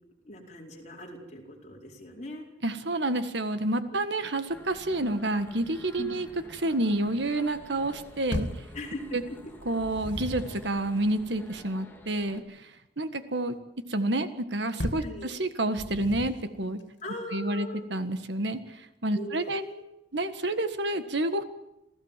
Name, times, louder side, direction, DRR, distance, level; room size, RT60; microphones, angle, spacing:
voice 1, 0.2-2.5 6.0-6.2 8.7-9.4 15.0-15.3 17.0-17.9 19.1-19.8, left 1 dB, 40° left, 0 dB, 4.7 m, -40 dB
voice 2, 2.6-6.3 6.6-8.5 9.1-9.2 9.7-12.7 13.0-13.6 13.9-16.8 17.3-19.6 20.1-21.4, right 1 dB, 65° right, 9 dB, 1.7 m, -29 dB
sound 1, 4.5-12.4, left 1 dB, 10° left, 3.1 m, -50 dB
sound 2, 8.3-8.7 9.6-10.7 14.8-15.2 15.8-16.5, left 1 dB, 75° left, 3.0 m, -34 dB
27.5 x 16.5 x 7.6 m, 0.89 s
head